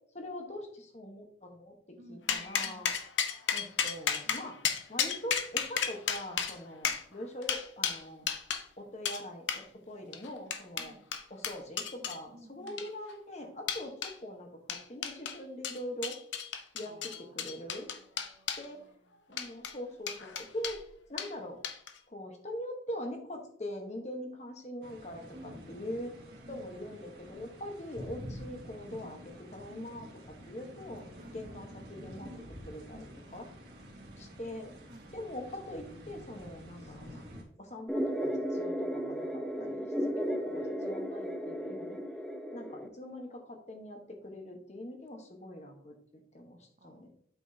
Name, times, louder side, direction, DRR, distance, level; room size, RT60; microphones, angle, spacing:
voice 1, 0.1-1.7 2.1-2.9 3.5-4.6 4.9-8.3 8.8-11.0 11.3-16.2 16.7-17.9 18.6-18.8 19.3-20.8 21.1-21.6 22.1-26.1 26.5-31.1 31.3-32.3 32.6-33.5 34.2-34.8 35.1-37.3 37.6-39.8 40.1-42.0 42.5-45.9 46.3-47.1, left 1 dB, 40° left, 3 dB, 1.2 m, -43 dB
voice 2, 2.0-2.8 10.8-11.1 12.0-12.8 16.8-19.0 25.3-26.0 26.4-26.7 31.2-31.4 33.3-33.5 33.8-34.4 34.9-35.1 39.6-41.0 46.8-47.1, right 1 dB, 40° right, 6 dB, 0.8 m, -55 dB
sound 1, 2.3-8.6 9.1-9.2 9.5-9.6 10.1-12.2 12.7-13.1 13.7-14.1 14.7-15.4 15.6-18.7 19.3-19.7 20.1-20.8 21.2-21.3 21.6-22.0, left 7 dB, 90° left, 0.8 m, -33 dB
sound 2, 24.8-37.4, equal, 60° right, 1.8 m, -48 dB
sound 3, 37.9-42.9, equal, 5° left, 0.6 m, -34 dB
8.1 x 6.0 x 2.8 m, 0.63 s
head